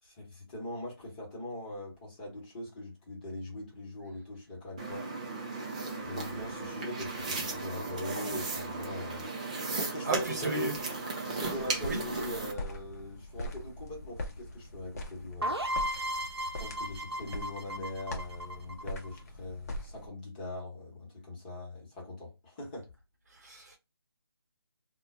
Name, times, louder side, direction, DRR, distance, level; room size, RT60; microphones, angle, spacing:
voice 1, 0.0-5.1 6.0-9.3 9.8-10.7 11.2-15.6 16.6-22.9, left 1 dB, 20° left, 1.0 m, -41 dB
sound 1, 4.8-12.5, right 3 dB, 15° right, 0.3 m, -36 dB
voice 2, 10.0-10.7 11.8-12.0 23.3-23.8, right 2 dB, 45° right, 0.9 m, -34 dB
sound 2, 11.4-20.1, left 1 dB, 40° left, 0.7 m, -42 dB
sound 3, 15.4-19.1, equal, 85° right, 0.6 m, -35 dB
2.2 x 2.1 x 3.7 m
figure-of-eight pair, 155°, 13 cm